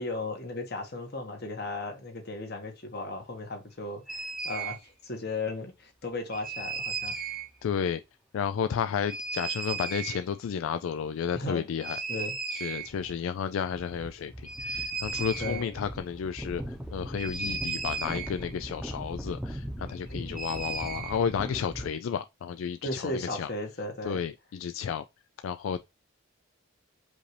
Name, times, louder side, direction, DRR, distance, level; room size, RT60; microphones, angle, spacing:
voice 1, 0.0-7.2 11.3-11.6 12.1-12.4 15.4-15.7 20.1-20.3 22.8-24.2, left 2 dB, 55° left, 1.4 m, -36 dB
sound 1, 4.1-4.8 6.3-7.5 9.1-10.2 11.8-13.1 13.4-13.5 13.6-21.9, right 3 dB, ahead, 0.8 m, -36 dB
voice 2, 7.6-8.0 8.3-12.0 12.5-23.5 24.0-25.0 25.4-25.8, left 7 dB, 75° left, 0.3 m, -32 dB
5.2 x 2.6 x 3.2 m
head